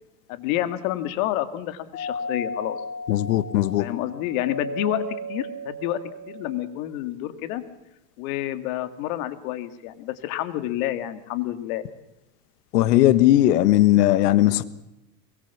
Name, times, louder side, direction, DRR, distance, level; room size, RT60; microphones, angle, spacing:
voice 1, 0.3-2.8 3.8-6.0 6.3-7.6 8.2-11.9, left 13 dB, 55° left, 10 dB, 2.1 m, -29 dB
Doorbell, 1.9-6.8, left 1 dB, 35° left, 2.2 m, -35 dB
voice 2, 3.1-3.9 12.7-14.6, left 14 dB, 70° left, 15 dB, 1.5 m, -18 dB
23.0 x 22.5 x 7.2 m, 0.93 s
supercardioid pair, 145°, 49 cm